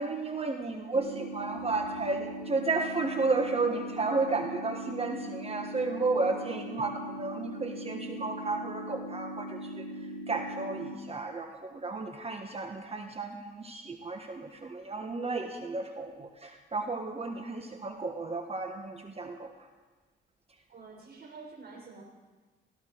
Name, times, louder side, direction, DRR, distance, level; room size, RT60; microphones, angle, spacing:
voice 1, 0.0-9.8 10.3-19.5, right 3 dB, 30° right, 4 dB, 1.5 m, -33 dB
sound 1, 0.9-10.9, right 1 dB, 90° right, 1.9 m, -40 dB
voice 2, 20.7-22.0, right 4 dB, 50° right, -2 dB, 5.9 m, -48 dB
18.5 x 15.5 x 4.7 m, 1.3 s
cardioid pair, 90°, 20 cm